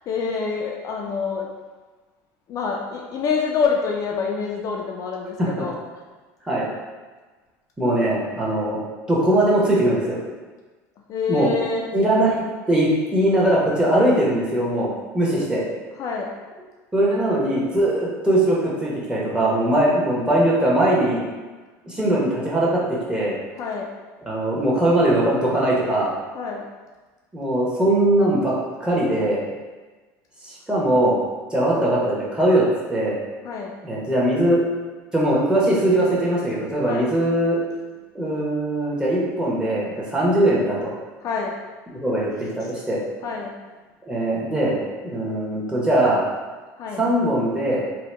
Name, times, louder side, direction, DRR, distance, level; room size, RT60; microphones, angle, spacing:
voice 1, 0.1-1.5 2.5-5.8 11.1-11.8 16.0-16.3 23.6-23.9 26.3-26.7 33.4-33.7 36.9-37.1 41.2-41.5 43.2-43.5 46.8-47.0, left 5 dB, 45° left, -1 dB, 0.4 m, -26 dB
voice 2, 7.8-8.8 9.1-10.2 11.3-11.5 11.9-15.6 16.9-21.2 21.9-22.8 23.1-23.3 24.2-26.1 27.3-28.5 28.8-29.4 30.4-31.2 31.5-33.2 33.8-34.6 35.1-37.6 38.1-40.9 41.9-43.0 44.1-44.8 45.0-46.2 47.0-47.8, right 1 dB, 10° right, -6 dB, 1.0 m, -20 dB
2.8 x 2.1 x 3.2 m, 1.3 s
supercardioid pair, 100°, 8 cm